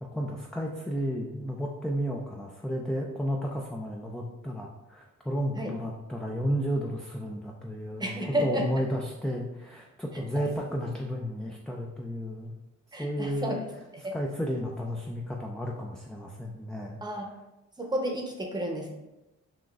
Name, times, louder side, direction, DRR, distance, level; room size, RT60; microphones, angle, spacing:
voice 1, 0.0-12.5 13.0-13.6 14.1-17.0, equal, ahead, -1 dB, 0.3 m, -32 dB
voice 2, 8.0-8.6 10.1-10.2 12.9-13.6 14.0-14.1 17.0-17.3 17.8-18.9, equal, 15° right, 1 dB, 0.7 m, -31 dB
5.8 x 2.4 x 2.4 m, 0.98 s
cardioid pair, 90°, 30 cm